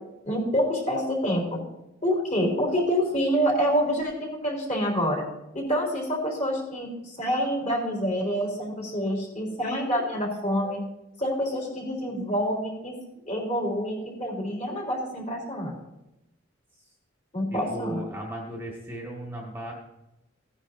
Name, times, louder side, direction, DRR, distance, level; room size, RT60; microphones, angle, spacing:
voice 1, 0.2-1.6 2.0-5.2 5.5-10.8 11.2-13.0 13.2-15.7 17.3-18.0, equal, 35° left, -2 dB, 3.5 m, -27 dB
voice 2, 17.5-19.7, right 1 dB, 10° right, -2 dB, 1.6 m, -36 dB
16.0 x 9.8 x 2.6 m, 0.90 s
head